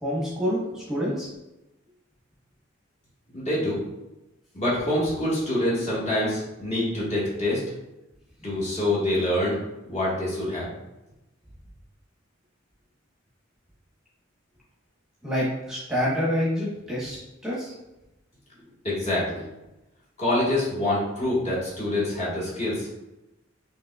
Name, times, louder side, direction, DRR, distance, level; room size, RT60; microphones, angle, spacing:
voice 1, 0.0-1.3 15.2-17.2 17.4-17.7, equal, 5° right, -8 dB, 1.0 m, -27 dB
voice 2, 3.3-3.8 4.5-7.6 8.4-9.6 9.8-10.7 18.8-19.4 20.2-22.9, left 1 dB, 35° left, -7 dB, 1.4 m, -26 dB
5.1 x 2.9 x 2.3 m, 0.96 s
head